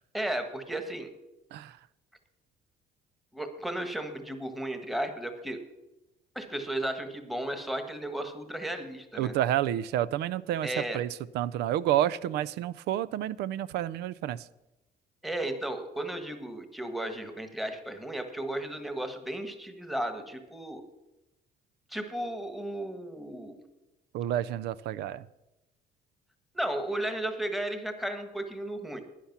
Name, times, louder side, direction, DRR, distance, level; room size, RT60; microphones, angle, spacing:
voice 1, 0.1-1.1 3.3-5.6 6.3-9.3 10.6-11.0 15.2-20.8 21.9-23.6 26.5-29.0, right 1 dB, ahead, 7 dB, 1.4 m, -34 dB
voice 2, 9.2-14.5 24.1-25.3, right 12 dB, 80° right, 19 dB, 0.5 m, -30 dB
11.5 x 10.0 x 5.9 m, 0.97 s
cardioid pair, 110°, 17 cm